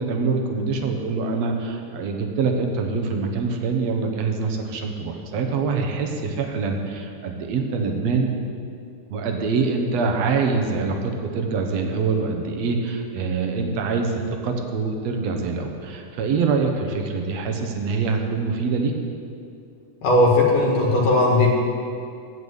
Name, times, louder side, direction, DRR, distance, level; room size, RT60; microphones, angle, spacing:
voice 1, 0.0-8.3 9.1-18.9, right 4 dB, 65° right, 4 dB, 2.1 m, -24 dB
voice 2, 20.0-21.5, left 2 dB, 85° left, -3 dB, 3.4 m, -17 dB
11.0 x 8.1 x 8.1 m, 2.4 s
omnidirectional pair, 3.6 m